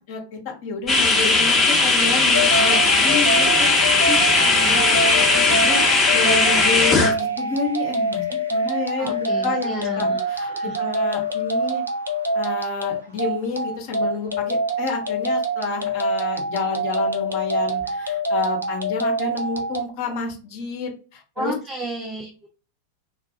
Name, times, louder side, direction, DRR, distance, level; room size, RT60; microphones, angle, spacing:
voice 1, 0.0-4.2 4.6-5.8 6.1-8.2 8.5-11.8 12.3-21.5, left 5 dB, 45° left, 2 dB, 0.9 m, -29 dB
sound 1, 0.9-7.1, left 3 dB, 20° left, 1.0 m, -18 dB
sound 2, 2.3-19.8, right 1 dB, 80° right, 0.5 m, -25 dB
voice 2, 4.3-4.8 9.0-10.8 18.0-18.1 21.4-22.5, right 1 dB, 20° right, 1 dB, 0.6 m, -33 dB
3.5 x 2.3 x 2.6 m, 0.36 s
figure-of-eight pair, 90°, 0 cm